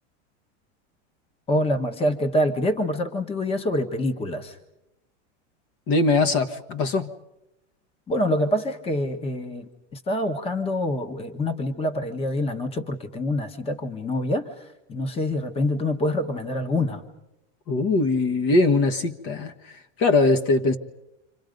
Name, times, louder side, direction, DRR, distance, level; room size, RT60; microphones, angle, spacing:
voice 1, 1.5-4.6 8.1-14.5 14.9-17.0, left 1 dB, 15° left, 1.3 m, -26 dB
voice 2, 5.9-7.1 17.7-20.8, left 3 dB, 40° left, 1.5 m, -21 dB
30.0 x 26.0 x 5.3 m
supercardioid pair, 155°, 36 cm